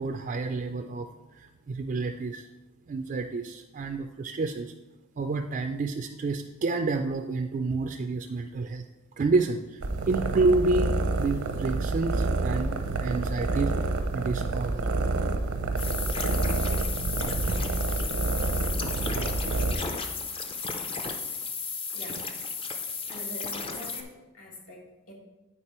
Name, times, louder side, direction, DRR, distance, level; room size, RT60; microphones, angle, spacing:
voice 1, 0.0-2.5 2.9-4.7 5.2-8.8 9.2-10.9 11.2-13.7 14.1-14.9 17.5-17.6, right 3 dB, 40° right, 5 dB, 0.3 m, -29 dB
sound 1, 9.8-19.7, right 3 dB, 80° right, 0.7 m, -28 dB
sound 2, 15.8-24.0, left 4 dB, 25° left, 0.5 m, -34 dB
voice 2, 21.9-22.3 23.1-25.1, equal, 70° left, -1 dB, 1.6 m, -44 dB
8.3 x 4.6 x 4.3 m, 1.1 s
head